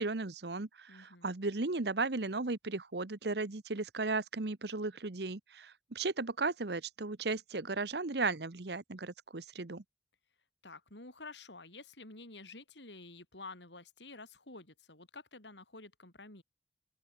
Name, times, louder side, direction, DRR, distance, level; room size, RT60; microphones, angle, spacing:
voice 1, 0.0-9.8, right 3 dB, 70° right, 1.1 m, -35 dB
voice 2, 0.9-1.3 10.6-16.4, left 3 dB, 90° left, 6.4 m, -50 dB
open air
head